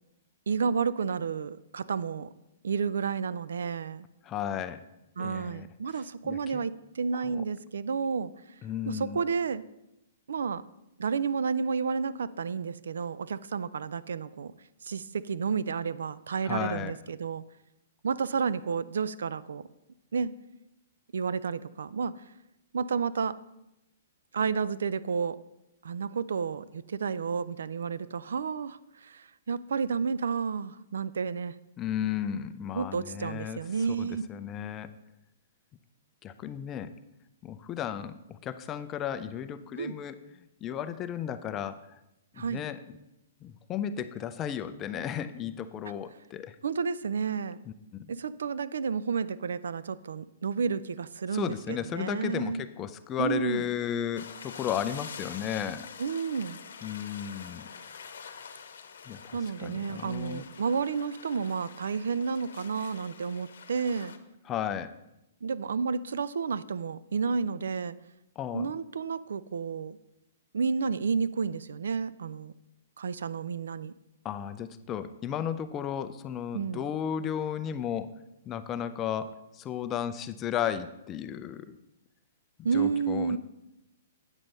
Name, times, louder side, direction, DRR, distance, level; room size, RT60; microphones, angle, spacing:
voice 1, 0.5-2.3 2.6-4.1 5.2-8.3 8.9-9.6 10.3-10.6 11.0-14.5 14.8-17.4 18.0-19.6 20.1-20.3 21.1-22.2 22.7-23.4 24.3-25.4 25.8-31.5 32.7-34.2 39.8-39.9 42.4-42.6 46.6-47.6 48.1-52.6 53.2-53.6 56.0-56.6 59.3-64.2 65.4-67.9 68.5-70.0 70.5-72.5 73.0-73.9 76.5-76.8 82.6-83.4, right 5 dB, 85° right, 17 dB, 0.4 m, -31 dB
voice 2, 4.2-4.8 5.2-5.7 6.2-6.6 7.2-7.4 8.6-9.2 16.4-16.9 31.8-33.6 34.0-34.9 36.2-36.9 37.4-40.2 40.6-42.0 42.4-42.8 43.4-46.6 47.7-47.8 51.3-55.8 56.8-57.7 59.1-60.4 64.5-64.9 68.4-68.7 74.2-78.1 78.5-81.8 82.7-83.4, left 9 dB, 20° left, 10 dB, 0.5 m, -34 dB
sound 1, 54.2-64.2, left 6 dB, 80° left, 0.9 m, -46 dB
8.9 x 6.2 x 5.3 m, 0.90 s
hypercardioid pair, 155°, 0 cm